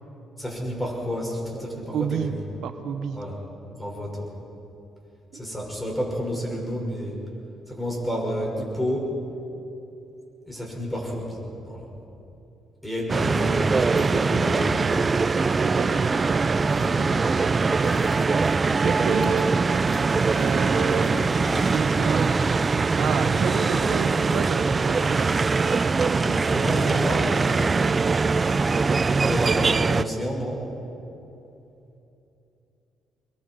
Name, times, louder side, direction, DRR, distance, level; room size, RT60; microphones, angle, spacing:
voice 1, 0.4-2.4 3.1-3.4 3.7-4.3 5.3-7.2 7.7-9.1 10.4-11.4 11.7-11.9 12.8-15.0 16.7-17.3 19.2-19.4 23.1-23.4 26.2-27.3 29.3-30.6, equal, 10° left, -2 dB, 6.3 m, -30 dB
voice 2, 1.9-2.3 2.6-3.2 15.6-16.2 18.8-19.4 20.3-22.4 23.0-25.5, right 7 dB, 75° right, 8 dB, 1.1 m, -30 dB
sound 1, 13.1-30.0, right 4 dB, 30° right, 0.5 m, -22 dB
sound 2, 17.8-18.5 19.2-19.4 19.9-20.5 21.0-22.7 23.1-23.2, left 5 dB, 40° left, 0.8 m, -41 dB
24.5 x 22.0 x 4.8 m, 2.9 s
cardioid pair, 90°, 0 cm